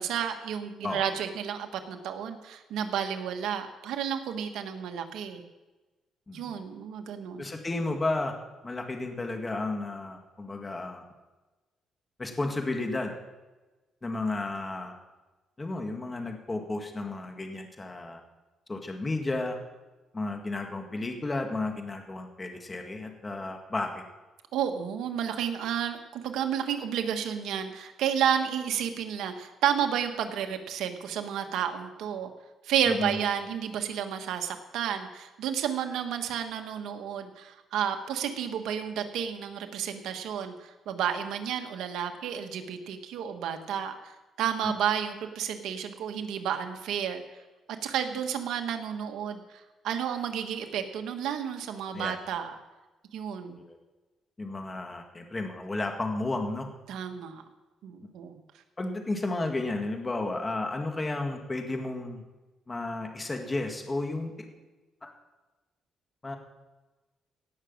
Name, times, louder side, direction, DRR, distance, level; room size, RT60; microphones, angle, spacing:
voice 1, 0.0-5.4 6.3-7.5 24.5-32.3 32.6-44.0 44.4-47.2 47.8-52.5 53.1-53.6 56.9-57.4 57.8-58.4, right 8 dB, 80° right, 6 dB, 1.4 m, -31 dB
voice 2, 7.4-8.3 8.6-11.0 12.2-13.1 14.0-14.9 15.6-18.2 18.7-19.6 20.1-24.0 32.9-33.2 44.6-44.7 51.9-52.2 53.6-53.8 54.4-56.7 58.0-58.1 58.8-62.2 62.7-64.5 65.0-65.1 66.2-66.4, left 2 dB, 25° left, 4 dB, 2.0 m, -32 dB
17.5 x 6.3 x 7.3 m, 1.2 s
cardioid pair, 90°, 0 cm